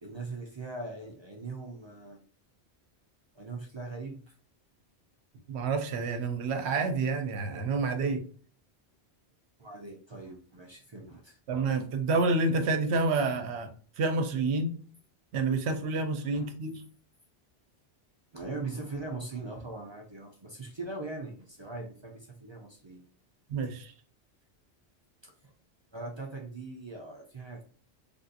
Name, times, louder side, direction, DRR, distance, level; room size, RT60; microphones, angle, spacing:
voice 1, 0.0-2.2 3.3-4.3 9.6-11.4 16.3-16.5 18.3-23.0 25.2-25.5 25.9-27.6, right 3 dB, 45° right, 0 dB, 0.3 m, -41 dB
voice 2, 5.5-8.2 11.5-13.7 14.0-14.8 15.3-16.8 23.5-23.9, right 3 dB, 75° right, 7 dB, 0.9 m, -28 dB
3.4 x 2.6 x 2.5 m, 0.44 s
omnidirectional pair, 1.1 m